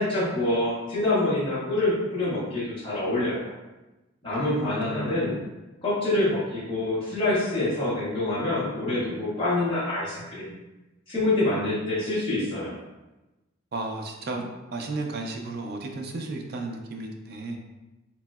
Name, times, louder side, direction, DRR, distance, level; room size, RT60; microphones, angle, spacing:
voice 1, 0.0-3.5 4.2-5.4 5.8-10.5 11.1-12.8, left 2 dB, 25° left, -10 dB, 0.9 m, -26 dB
voice 2, 4.4-5.3 13.7-17.6, right 2 dB, 50° right, 2 dB, 0.4 m, -34 dB
3.0 x 2.7 x 2.3 m, 1.1 s
head